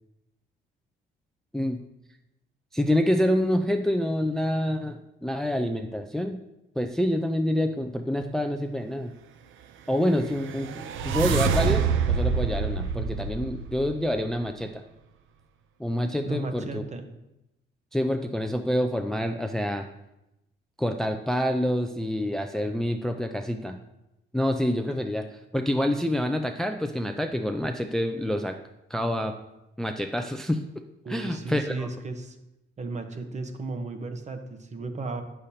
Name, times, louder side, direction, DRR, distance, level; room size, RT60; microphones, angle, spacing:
voice 1, 2.7-6.4 6.8-9.1 9.9-14.8 15.8-16.8 17.9-19.9 20.8-23.8 24.3-28.6 28.9-29.3 29.8-30.6 31.1-31.9, equal, ahead, 6 dB, 0.4 m, -27 dB
sound 1, 10.1-14.3, right 6 dB, 80° right, 0.5 m, -27 dB
voice 2, 16.2-17.0 31.0-32.4 32.8-35.2, right 3 dB, 35° right, 6 dB, 0.9 m, -34 dB
8.7 x 6.5 x 2.8 m, 0.89 s
cardioid pair, 90°, 20 cm